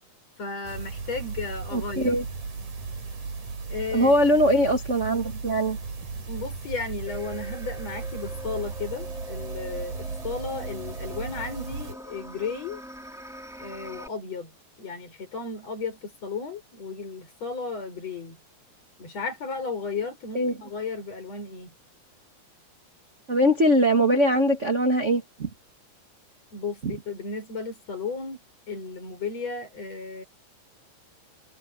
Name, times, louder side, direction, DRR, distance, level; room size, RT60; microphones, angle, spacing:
voice 1, 0.4-2.2 3.7-4.2 6.3-10.0 10.2-12.8 13.6-18.4 19.0-21.7 26.5-30.2, left 4 dB, 45° left, 7.1 m, -34 dB
sound 1, 0.6-11.9, right 4 dB, 55° right, 6.0 m, -36 dB
voice 2, 1.7-2.2 3.9-5.8 20.3-20.5 23.3-25.5, equal, 30° right, 1.6 m, -21 dB
sound 2, 7.1-14.1, equal, ahead, 6.4 m, -42 dB
omnidirectional pair, 4.0 m